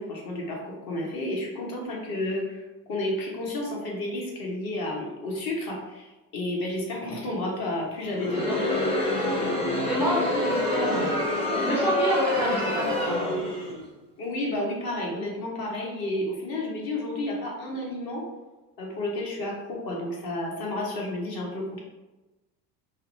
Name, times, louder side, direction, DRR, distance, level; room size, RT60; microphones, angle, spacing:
voice 1, 0.0-2.6 2.9-8.8 14.2-18.2 18.8-21.8, left 1 dB, 45° left, -2 dB, 1.0 m, -31 dB
Crowd, 8.1-13.8, left 1 dB, 10° left, 0.7 m, -26 dB
voice 2, 9.9-11.1 11.6-13.2, right 1 dB, 5° right, -6 dB, 0.3 m, -28 dB
2.7 x 2.1 x 2.7 m, 1.1 s
hypercardioid pair, 70°, 50 cm